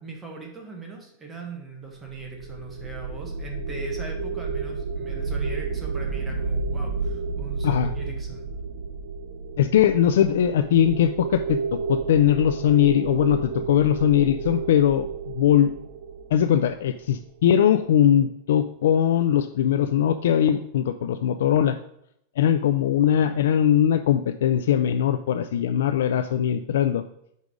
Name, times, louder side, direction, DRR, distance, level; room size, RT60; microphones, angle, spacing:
voice 1, 0.0-8.5, right 3 dB, 10° right, 0 dB, 1.2 m, -40 dB
sound 1, 2.0-17.2, right 4 dB, 65° right, 0.6 m, -31 dB
voice 2, 9.6-15.7 16.3-21.8 22.4-27.0, left 10 dB, 85° left, 9 dB, 0.3 m, -21 dB
5.2 x 4.7 x 5.2 m, 0.75 s
supercardioid pair, 165°, 0 cm